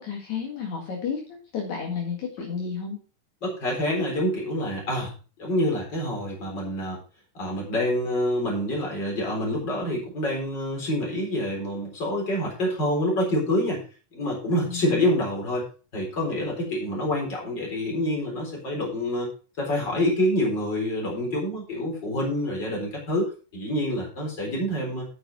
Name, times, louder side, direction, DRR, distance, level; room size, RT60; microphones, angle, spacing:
voice 1, 0.0-3.0 14.6-15.1, left 6 dB, 70° left, 0 dB, 3.3 m, -32 dB
voice 2, 3.4-5.1 5.4-7.0 7.3-13.8 14.1-15.6 15.9-19.3 19.6-25.1, left 1 dB, 35° left, -1 dB, 4.6 m, -27 dB
9.5 x 7.7 x 4.1 m, 0.36 s
omnidirectional pair, 3.4 m